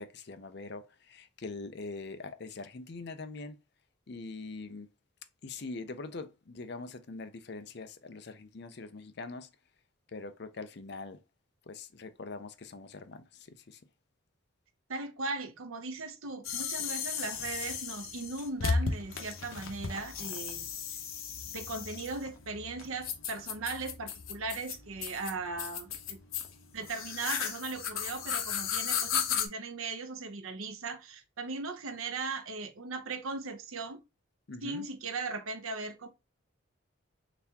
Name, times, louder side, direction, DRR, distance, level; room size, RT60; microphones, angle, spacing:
voice 1, 0.0-3.6 4.1-4.9 5.4-9.5 10.1-11.2 11.7-13.8 34.5-34.9, left 3 dB, 55° left, 0.5 m, -43 dB
voice 2, 14.9-21.0 21.5-26.2 26.7-34.0 34.6-36.1, right 3 dB, 85° right, 0.7 m, -38 dB
sound 1, 16.4-29.5, left 6 dB, 85° left, 0.9 m, -35 dB
4.0 x 3.4 x 2.8 m
head